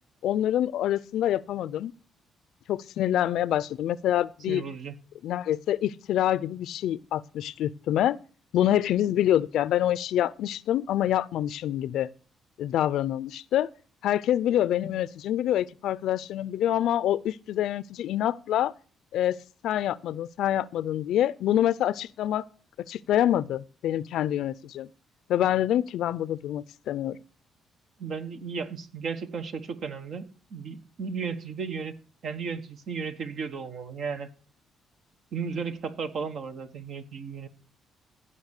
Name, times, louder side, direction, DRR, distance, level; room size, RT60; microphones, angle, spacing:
voice 1, 0.2-1.9 2.7-4.6 5.2-8.2 8.5-12.1 12.6-13.7 14.0-18.7 19.1-19.4 19.6-22.4 22.9-24.9 25.3-27.2, left 12 dB, 80° left, 0.4 m, -26 dB
voice 2, 4.5-4.9 28.0-31.9 32.2-34.3 35.3-37.5, right 5 dB, 65° right, 1.3 m, -34 dB
15.5 x 5.6 x 6.5 m
cardioid pair, 90°, 0 cm